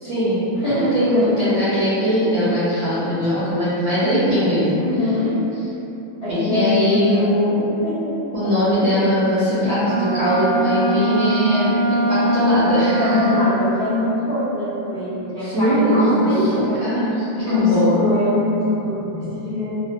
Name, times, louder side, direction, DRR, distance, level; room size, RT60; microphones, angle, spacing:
voice 1, 0.0-4.8 6.3-7.7 8.3-13.2 15.4-17.9, equal, 70° right, -10 dB, 0.9 m, -20 dB
voice 2, 0.5-1.2 4.8-5.4 6.2-7.2 7.8-8.1 8.4-8.5 13.0-16.8 17.4-19.7, left 2 dB, 70° left, -15 dB, 0.6 m, -23 dB
Wind instrument woodwind instrument, 9.7-13.7, right 1 dB, 50° right, 0.7 m, -21 dB
3.2 x 2.0 x 2.6 m, 3.0 s
omnidirectional pair, 2.2 m